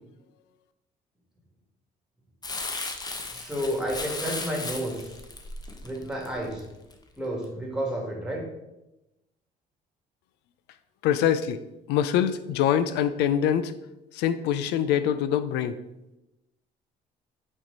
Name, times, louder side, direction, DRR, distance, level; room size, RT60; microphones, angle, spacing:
Crumpling crinkling, 2.4-6.9 7.4-7.5, left 3 dB, 25° left, 0.8 m, -36 dB
voice 1, 3.3-5.2 5.8-6.6 7.2-8.4, right 1 dB, 5° right, -1 dB, 2.1 m, -31 dB
voice 2, 11.0-11.6 11.9-13.7 14.2-15.7, left 9 dB, 85° left, 12 dB, 0.4 m, -24 dB
5.9 x 4.4 x 4.0 m, 0.95 s
cardioid pair, 110°, 17 cm